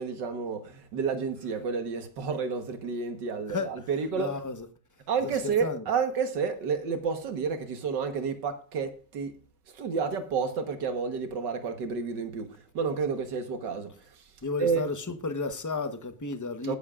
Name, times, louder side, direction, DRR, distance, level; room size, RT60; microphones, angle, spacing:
voice 1, 0.0-4.4 5.1-9.4 9.7-13.9 14.6-14.8 16.6-16.8, right 5 dB, 80° right, 2.0 m, -30 dB
voice 2, 3.4-3.9 4.2-4.7 5.2-5.9 14.4-16.8, left 3 dB, 15° left, 0.8 m, -33 dB
19.0 x 10.5 x 2.5 m
omnidirectional pair, 1.9 m